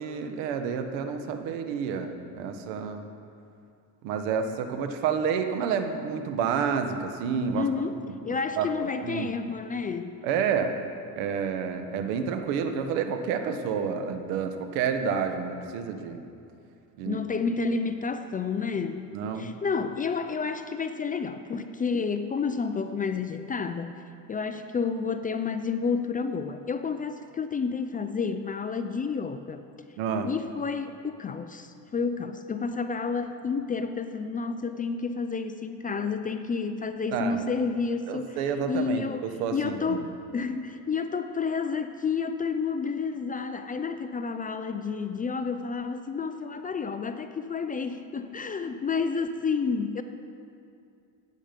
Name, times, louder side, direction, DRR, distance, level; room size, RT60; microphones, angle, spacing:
voice 1, 0.0-3.1 4.0-7.7 8.6-9.3 10.2-10.7 11.1-16.2 17.0-17.2 19.1-19.5 30.0-30.3 37.1-37.4 38.1-40.0, right 6 dB, 80° right, 7 dB, 1.3 m, -29 dB
voice 2, 7.6-8.0 8.2-10.2 17.1-23.9 24.3-29.6 30.2-50.0, left 5 dB, 20° left, 9 dB, 0.4 m, -30 dB
15.0 x 8.8 x 5.2 m, 2.5 s
cardioid pair, 115°, 43 cm